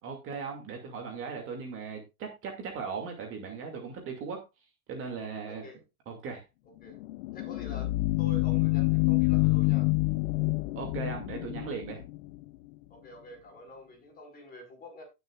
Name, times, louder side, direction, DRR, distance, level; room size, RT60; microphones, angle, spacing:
voice 1, 0.0-4.4 4.9-5.6 6.1-6.4 10.8-12.0, right 5 dB, 30° right, 2 dB, 2.3 m, -38 dB
voice 2, 5.5-5.8 6.6-7.0 7.3-9.9 12.9-15.0, equal, 20° left, 2 dB, 5.1 m, -47 dB
sound 1, 6.9-12.4, left 23 dB, 50° left, 0.6 m, -27 dB
17.5 x 6.8 x 2.4 m, 0.25 s
supercardioid pair, 150°, 43 cm